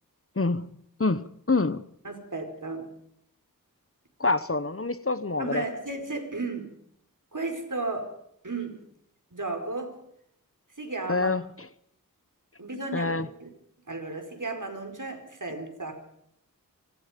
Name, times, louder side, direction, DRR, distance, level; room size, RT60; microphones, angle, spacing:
voice 1, 0.4-0.7 1.0-1.8 4.2-5.6 11.1-11.4 12.9-13.3, left 3 dB, 40° left, 1.0 m, -26 dB
voice 2, 2.0-2.9 5.4-6.8 7.3-8.1 8.4-8.8 9.3-10.0 10.8-11.3 12.6-13.1 13.4-13.5 13.9-15.9, right 3 dB, 60° right, 5.2 m, -34 dB
26.0 x 25.0 x 5.3 m
wide cardioid pair, 50°, 35 cm